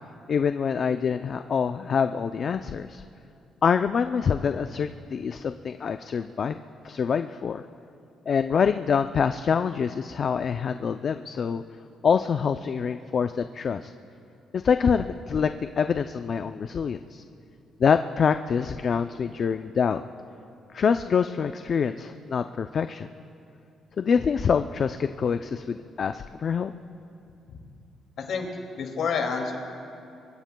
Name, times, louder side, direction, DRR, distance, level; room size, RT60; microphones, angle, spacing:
voice 1, 0.3-3.0 3.6-7.6 8.3-11.6 12.0-13.9 14.5-17.2 17.8-20.0 20.7-23.1 24.0-26.7, left 6 dB, 50° left, 8 dB, 0.4 m, -25 dB
voice 2, 28.2-28.5 28.8-29.6, left 5 dB, 70° left, 2 dB, 2.3 m, -28 dB
25.0 x 23.0 x 2.3 m, 2.6 s
cardioid pair, 90°, 0 cm